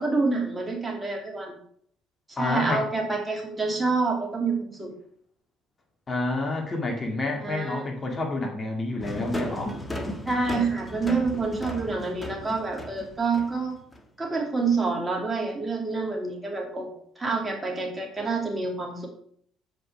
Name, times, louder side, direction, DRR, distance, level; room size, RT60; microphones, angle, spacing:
voice 1, 0.0-1.5 2.3-4.9 7.4-7.8 10.3-13.7 14.2-16.9 17.2-19.1, right 3 dB, 20° right, 1 dB, 2.5 m, -27 dB
voice 2, 2.4-2.8 6.1-9.8, left 2 dB, 30° left, 2 dB, 2.1 m, -29 dB
sound 1, 9.0-14.0, left 1 dB, 15° left, 1.4 m, -35 dB
7.6 x 5.3 x 4.7 m, 0.63 s
hypercardioid pair, 55°, 0 cm